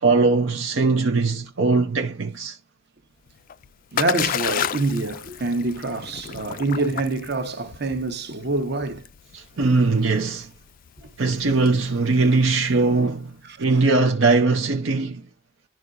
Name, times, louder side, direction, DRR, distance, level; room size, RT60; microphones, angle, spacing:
voice 1, 0.0-2.6 9.3-10.5 11.2-13.3 13.6-15.2, right 3 dB, 75° right, 0.7 m, -20 dB
Splash splatter, 3.3-13.1, left 9 dB, 45° left, 0.3 m, -32 dB
voice 2, 3.9-9.1 13.4-13.8, right 3 dB, 55° right, 1.0 m, -26 dB
11.5 x 4.7 x 2.5 m
head